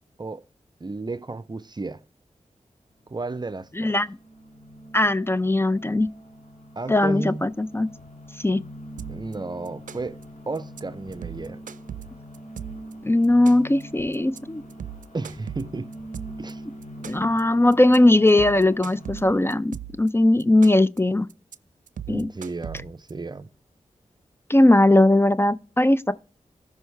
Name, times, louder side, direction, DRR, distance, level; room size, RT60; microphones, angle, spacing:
voice 1, 0.8-2.0 3.1-3.9 6.8-7.5 9.1-10.2 10.5-11.6 15.1-15.9 16.4-16.6 22.1-23.5, right 3 dB, 35° right, 0.6 m, -33 dB
sound 1, 3.1-19.6, right 1 dB, 80° left, 2.8 m, -42 dB
voice 2, 3.8-4.1 4.9-6.1 6.9-7.9 8.4-8.6 13.0-14.6 17.0-21.3 22.1-22.3 24.5-26.1, left 1 dB, 20° left, 0.4 m, -19 dB
sound 2, 9.0-9.3 9.6-10.2 10.5-10.8 11.1-12.9 13.2-13.8 14.1-14.4 14.7-16.5 16.8-17.4 17.7-18.0 18.3-20.1 20.4-21.0 21.3-21.5 21.9-23.1, right 9 dB, 85° right, 0.4 m, -38 dB
13.5 x 5.5 x 3.3 m
cardioid pair, 45°, 13 cm